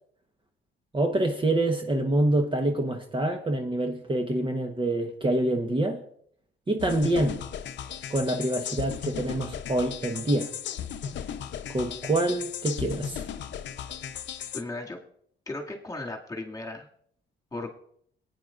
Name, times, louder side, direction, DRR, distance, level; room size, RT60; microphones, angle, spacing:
voice 1, 0.9-6.0 6.7-7.4 8.1-10.5 11.7-13.2, right 1 dB, 25° right, 4 dB, 1.1 m, -26 dB
sound 1, 6.8-14.6, left 8 dB, 65° left, 0.8 m, -36 dB
voice 2, 14.5-15.0 15.5-16.9 17.5-17.8, left 2 dB, 15° left, 1 dB, 2.3 m, -36 dB
18.5 x 9.5 x 2.5 m, 0.62 s
cardioid pair, 90°, 20 cm